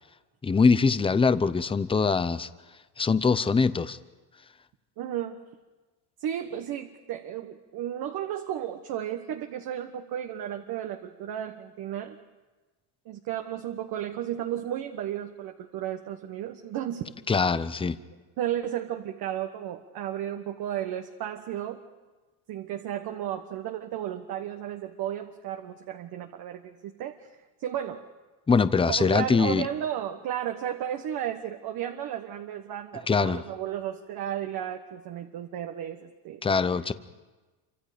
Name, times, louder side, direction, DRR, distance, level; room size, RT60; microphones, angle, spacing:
voice 1, 0.4-2.5 3.0-4.0 17.3-18.0 28.5-29.7 33.1-33.4 36.4-36.9, left 4 dB, 10° left, 14 dB, 0.7 m, -23 dB
voice 2, 5.0-5.4 6.2-12.2 13.0-17.1 18.4-21.8 22.5-27.2 27.6-28.0 28.9-36.4, right 11 dB, 50° right, 5 dB, 1.4 m, -33 dB
27.0 x 25.5 x 5.1 m, 1.2 s
supercardioid pair, 115°, 45 cm